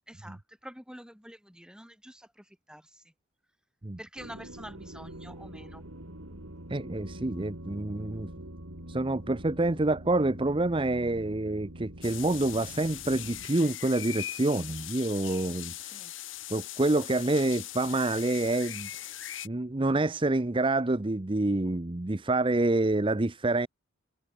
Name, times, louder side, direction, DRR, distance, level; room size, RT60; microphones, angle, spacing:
voice 1, 0.0-3.1 4.0-5.8 15.9-16.1, equal, 5° right, 3.9 m, -47 dB
sound 1, 4.2-13.5, right 1 dB, 80° right, 4.8 m, -45 dB
voice 2, 6.7-8.3 8.9-16.0 16.5-18.9 19.4-23.7, right 2 dB, 25° right, 0.7 m, -27 dB
sound 2, 12.0-19.5, left 13 dB, 65° left, 1.8 m, -40 dB
head